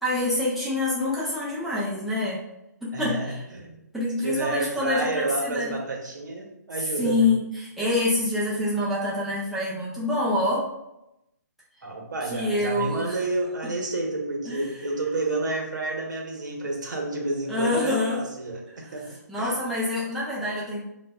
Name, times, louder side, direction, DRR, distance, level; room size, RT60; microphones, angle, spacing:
voice 1, 0.0-2.4 2.8-3.4 3.9-5.7 7.0-10.7 12.3-13.2 14.5-14.7 17.5-18.2 18.8-18.9 19.3-20.8, left 2 dB, ahead, -9 dB, 0.4 m, -26 dB
voice 2, 2.9-3.8 4.2-7.3 11.8-19.6, right 2 dB, 85° right, 0 dB, 0.8 m, -30 dB
3.8 x 2.2 x 2.2 m, 0.88 s
hypercardioid pair, 150°, 10 cm